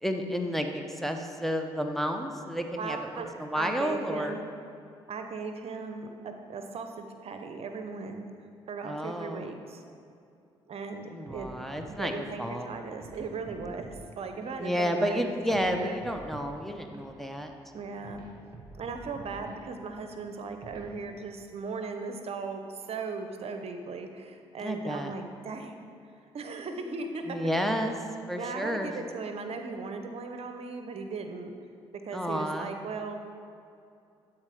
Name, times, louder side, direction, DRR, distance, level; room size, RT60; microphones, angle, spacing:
voice 1, 0.0-4.4 8.8-9.5 11.1-12.7 13.6-13.8 14.6-17.5 24.6-25.1 27.3-28.0 28.3-28.9 32.1-32.7, equal, ahead, 3 dB, 0.9 m, -31 dB
voice 2, 2.8-4.5 5.1-8.3 8.7-9.8 10.7-11.5 12.0-13.9 14.2-15.3 15.6-16.0 17.7-18.2 18.8-25.7 26.3-27.5 28.3-31.5 32.0-33.2, right 4 dB, 55° right, 6 dB, 0.8 m, -37 dB
sound 1, 11.3-21.4, right 3 dB, 35° right, 1.9 m, -49 dB
11.5 x 4.4 x 5.0 m, 2.6 s
supercardioid pair, 55°, 12 cm